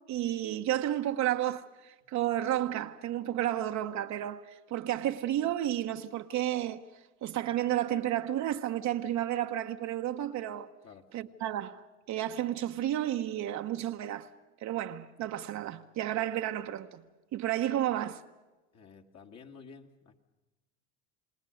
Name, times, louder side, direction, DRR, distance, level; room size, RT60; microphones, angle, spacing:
voice 1, 0.0-10.7 11.1-14.3 14.6-17.0 17.3-18.2, right 12 dB, 50° right, 1.0 m, -32 dB
voice 2, 18.7-20.2, left 5 dB, 45° left, 2.0 m, -51 dB
29.5 x 19.0 x 6.4 m
hypercardioid pair, 90°, 37 cm